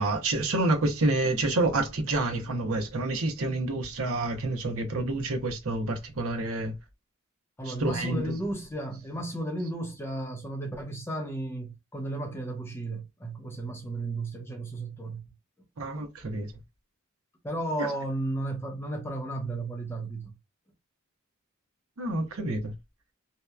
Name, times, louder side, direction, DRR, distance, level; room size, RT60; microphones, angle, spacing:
voice 1, 0.0-6.7 7.7-8.2 15.8-16.5 17.8-17.9 22.0-22.7, right 2 dB, 80° right, 0.7 m, -28 dB
voice 2, 7.6-15.2 17.4-20.4, right 1 dB, 10° left, 0.6 m, -34 dB
2.8 x 2.1 x 2.3 m
head